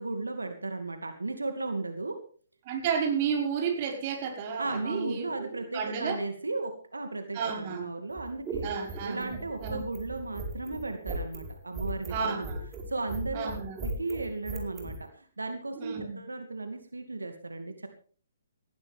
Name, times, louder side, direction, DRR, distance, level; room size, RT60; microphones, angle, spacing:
voice 1, 0.0-2.2 4.6-8.7 9.0-12.5 12.9-17.9, right 2 dB, 80° right, 6 dB, 2.4 m, -35 dB
voice 2, 2.7-6.2 7.3-7.9 8.6-9.3 9.6-9.8 12.1-12.6 13.3-13.7 15.8-16.2, right 6 dB, 35° right, 2 dB, 5.4 m, -32 dB
sound 1, 8.1-15.0, right 3 dB, 15° right, 4.7 m, -37 dB
19.5 x 15.5 x 3.6 m, 0.43 s
figure-of-eight pair, 130°, 0 cm